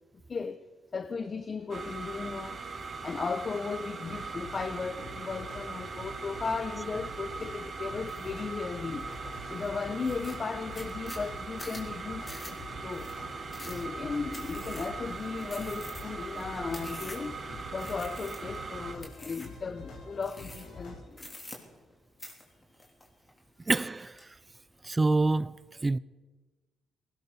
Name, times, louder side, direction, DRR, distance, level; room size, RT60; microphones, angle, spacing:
voice 1, 0.3-0.6 0.9-2.6 3.0-9.1 9.5-13.1 13.7-17.4 17.7-21.3, left 5 dB, 40° left, 0.7 m, -36 dB
sound 1, 1.7-18.9, right 4 dB, 45° right, 1.8 m, -40 dB
sound 2, 4.0-21.0, left 2 dB, 75° left, 6.0 m, -47 dB
sound 3, 8.1-8.3 8.8-9.3 9.6-9.7 10.0-17.4 17.8-18.6 19.0-19.6 20.2-20.8 21.1-21.9 22.2-23.4 23.7-24.3, left 1 dB, 20° left, 3.5 m, -47 dB
voice 2, 23.7-24.3 24.8-26.0, right 3 dB, 20° right, 0.5 m, -27 dB
19.0 x 17.5 x 4.2 m
cardioid pair, 90°, 0 cm